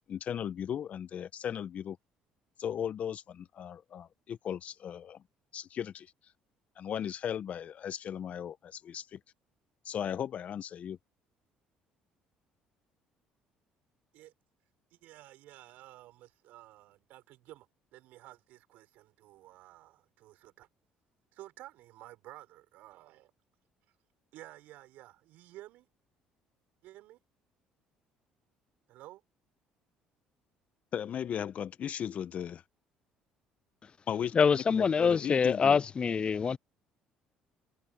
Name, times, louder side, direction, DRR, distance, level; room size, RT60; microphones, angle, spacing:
voice 1, 0.0-2.0 2.6-5.2 5.5-6.1 6.8-9.2 9.8-11.0 30.9-32.6 34.1-35.8, left 9 dB, 55° left, 1.1 m, -37 dB
voice 2, 14.9-20.7 21.3-23.3 24.3-25.9 26.8-27.2 28.9-29.2, right 16 dB, 75° right, 6.2 m, -53 dB
voice 3, 34.3-36.6, left 6 dB, 35° left, 0.4 m, -25 dB
supercardioid pair, 70°, 3 cm